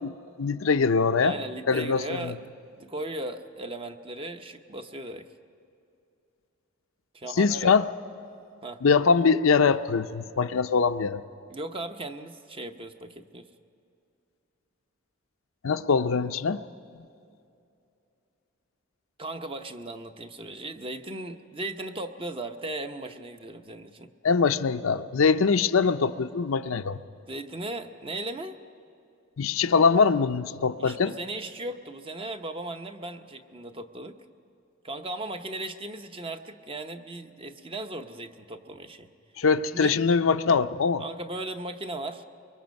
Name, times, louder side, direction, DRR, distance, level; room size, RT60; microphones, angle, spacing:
voice 1, 0.0-1.4 1.7-2.4 7.4-7.8 8.8-11.2 15.6-16.6 24.2-27.0 29.4-31.1 39.4-41.0, left 5 dB, 80° left, 10 dB, 0.6 m, -23 dB
voice 2, 1.2-2.4 2.7-5.3 7.1-7.7 8.6-8.8 11.5-13.5 19.2-24.1 27.3-28.6 30.8-34.2 34.8-39.1 39.7-39.9 41.0-42.2, right 2 dB, 25° right, 7 dB, 0.8 m, -37 dB
24.0 x 23.0 x 5.3 m, 2.6 s
head